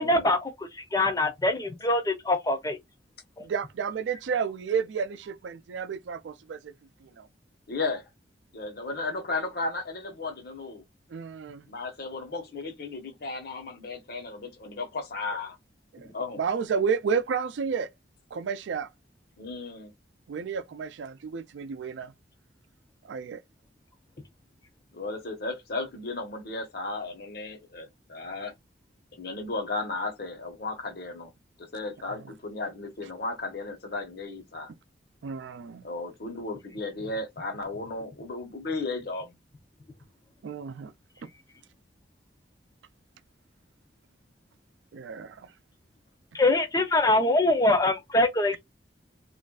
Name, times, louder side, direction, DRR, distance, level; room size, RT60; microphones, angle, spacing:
voice 1, 0.0-2.8 46.3-48.6, left 2 dB, 20° left, 0.6 m, -24 dB
voice 2, 3.4-6.7 7.0-7.3 11.1-11.6 16.4-17.9 18.3-18.9 20.3-22.1 23.0-23.4 35.2-35.8 40.4-40.9 44.9-45.4, right 6 dB, 85° right, 0.4 m, -31 dB
voice 3, 7.7-8.1 8.5-10.8 11.7-15.6 16.1-16.4 19.4-19.9 24.9-28.5 29.2-31.3 31.6-34.7 35.8-39.4, left 3 dB, 60° left, 1.0 m, -34 dB
3.2 x 2.5 x 2.3 m
head